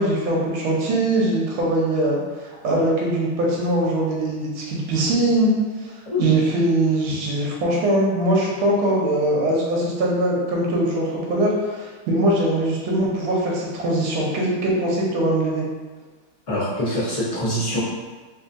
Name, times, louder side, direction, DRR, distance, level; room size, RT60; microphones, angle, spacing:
voice 1, 0.0-2.2 2.6-5.5 6.2-15.6, right 1 dB, 75° right, -3 dB, 1.5 m, -21 dB
voice 2, 16.5-17.8, left 1 dB, 40° left, -10 dB, 0.4 m, -24 dB
3.7 x 2.7 x 2.5 m, 1.3 s
omnidirectional pair, 2.3 m